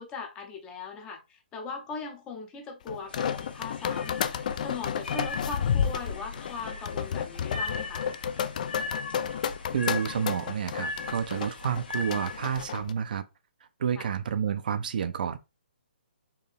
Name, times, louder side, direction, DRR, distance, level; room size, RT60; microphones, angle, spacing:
voice 1, 0.0-4.2 4.6-8.1 14.0-14.1, left 4 dB, 15° left, 0.7 m, -39 dB
sound 1, 2.9-12.9, left 8 dB, 45° left, 0.4 m, -31 dB
sound 2, 3.1-12.6, left 4 dB, 65° left, 1.3 m, -39 dB
voice 2, 9.7-13.2 13.8-15.4, right 7 dB, 55° right, 0.5 m, -29 dB
4.5 x 2.7 x 3.4 m
hypercardioid pair, 155°, 6 cm